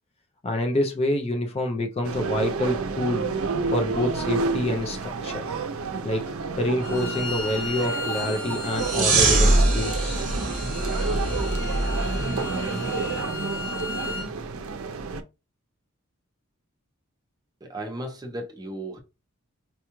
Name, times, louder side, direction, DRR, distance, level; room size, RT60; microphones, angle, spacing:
voice 1, 0.4-3.3 3.7-5.4 6.0-6.2 6.6-10.2 11.4-11.5, left 1 dB, 25° left, 0.4 m, -27 dB
sound 1, 2.0-15.2, right 4 dB, 75° right, 0.5 m, -30 dB
Bowed string instrument, 6.8-14.3, left 4 dB, 60° left, 1.1 m, -36 dB
sound 2, 8.8-13.2, right 2 dB, 35° right, 1.0 m, -24 dB
voice 2, 17.6-19.0, right 1 dB, 15° right, 0.6 m, -35 dB
4.4 x 2.3 x 2.9 m
head